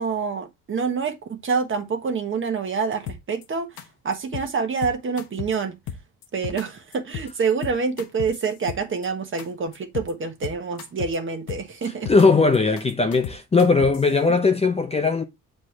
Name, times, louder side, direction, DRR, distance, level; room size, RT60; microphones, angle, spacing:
voice 1, 0.0-3.7 4.0-5.8 6.3-12.1, right 5 dB, 35° right, 1.3 m, -27 dB
sound 1, 3.1-3.4 3.8-3.9 4.1-4.5 4.8-5.5 5.9-6.6 6.9-7.3 7.6-9.1 9.4-9.5 9.7-10.1 10.4-11.2 11.5-12.3 12.5-14.1, left 8 dB, 75° left, 1.2 m, -34 dB
voice 2, 12.1-15.2, left 4 dB, 20° left, 0.6 m, -19 dB
7.7 x 4.4 x 3.2 m
cardioid pair, 125°, 34 cm